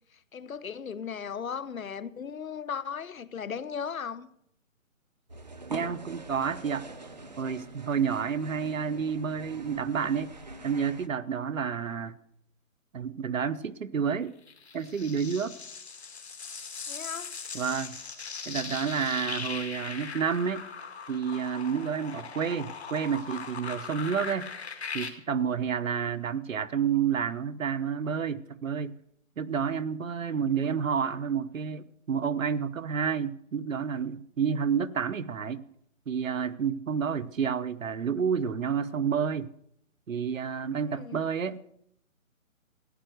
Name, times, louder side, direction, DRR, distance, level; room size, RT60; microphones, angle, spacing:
voice 1, 0.3-4.3 16.9-17.3 40.8-41.3, left 7 dB, 75° left, 1.1 m, -37 dB
sound 1, 5.3-11.1, right 2 dB, 30° right, 0.8 m, -44 dB
voice 2, 5.7-6.9 7.4-10.3 10.6-12.2 12.9-14.3 14.7-15.5 17.5-18.0 18.5-20.7 21.1-24.5 24.9-29.0 29.4-35.6 36.1-39.5 40.1-41.6, right 7 dB, 70° right, 1.0 m, -30 dB
sound 2, 14.5-25.1, left 5 dB, 50° left, 2.1 m, -39 dB
15.0 x 10.5 x 6.4 m
hypercardioid pair, 180°, 41 cm